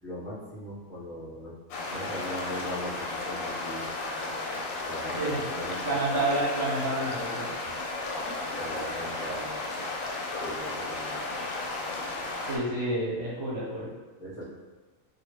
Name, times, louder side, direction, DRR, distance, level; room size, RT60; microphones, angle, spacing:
voice 1, 0.0-1.6 1.9-3.9 4.8-5.9 7.6-7.7 8.5-9.6 10.4-11.2 14.2-14.4, equal, 5° left, -10 dB, 0.8 m, -39 dB
sound 1, 1.7-12.6, left 2 dB, 80° left, 1.0 m, -34 dB
voice 2, 5.8-7.5 12.5-13.9, right 1 dB, 60° right, -6 dB, 1.3 m, -29 dB
2.7 x 2.7 x 3.1 m, 1.3 s
omnidirectional pair, 1.4 m